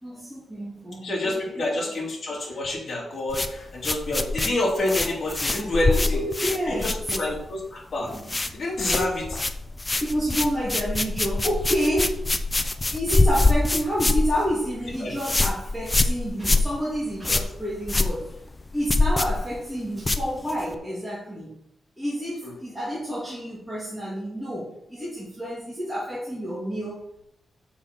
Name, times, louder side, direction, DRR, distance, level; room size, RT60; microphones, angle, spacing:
voice 1, 0.0-1.5 1.9-2.0 5.7-7.0 8.0-8.6 8.9-9.1 10.0-12.2 12.9-18.4 18.7-21.5 22.0-27.2, equal, ahead, -8 dB, 2.4 m, -29 dB
voice 2, 1.0-6.2 6.6-8.1 8.5-9.3 15.0-15.1, left 2 dB, 50° left, -3 dB, 3.3 m, -28 dB
sound 1, 3.3-7.7 7.9-8.5 8.8-20.8, left 2 dB, 20° left, 0.6 m, -25 dB
7.3 x 5.9 x 5.4 m, 0.76 s
wide cardioid pair, 115°, 0 cm